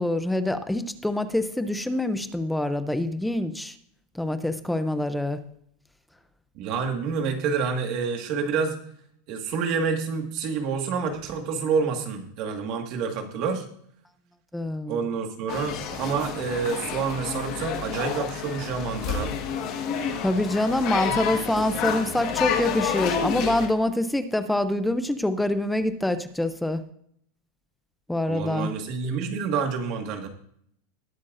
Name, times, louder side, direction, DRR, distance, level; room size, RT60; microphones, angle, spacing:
voice 1, 0.0-3.8 4.1-5.4 14.5-15.0 20.2-26.8 28.1-28.7, left 1 dB, 5° left, 11 dB, 0.5 m, -25 dB
voice 2, 6.5-8.8 9.3-13.6 14.9-19.3 21.1-21.2 21.6-22.1 28.3-30.3, right 5 dB, 40° right, 4 dB, 1.7 m, -28 dB
sound 1, 15.5-23.7, left 7 dB, 40° left, 1.4 m, -29 dB
20.0 x 8.2 x 2.6 m, 0.67 s
supercardioid pair, 170°, 0 cm